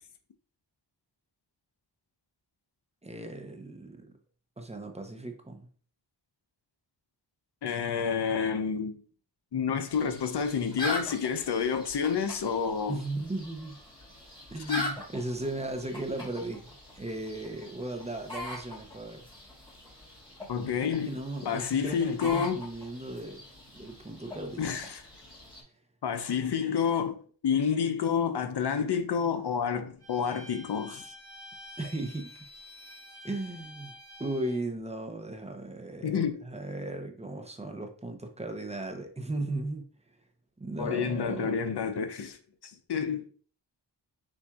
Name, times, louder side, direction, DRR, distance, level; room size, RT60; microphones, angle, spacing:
voice 1, 3.0-4.1 4.6-5.7 12.9-13.8 14.5-19.3 21.1-23.4 23.7-24.8 31.8-32.3 33.2-33.9 34.2-39.8 40.6-41.6, right 2 dB, 15° right, 0.7 m, -36 dB
voice 2, 7.6-9.0 9.5-13.0 14.7-14.9 20.5-22.6 24.6-25.0 26.0-27.2 27.4-31.1 36.0-36.4 40.8-43.2, left 7 dB, 65° left, 0.7 m, -29 dB
sound 1, 9.9-25.6, left 1 dB, 10° left, 1.7 m, -42 dB
Bowed string instrument, 30.0-34.6, left 1 dB, 60° right, 1.2 m, -49 dB
7.1 x 2.6 x 2.4 m
wide cardioid pair, 70°, 44 cm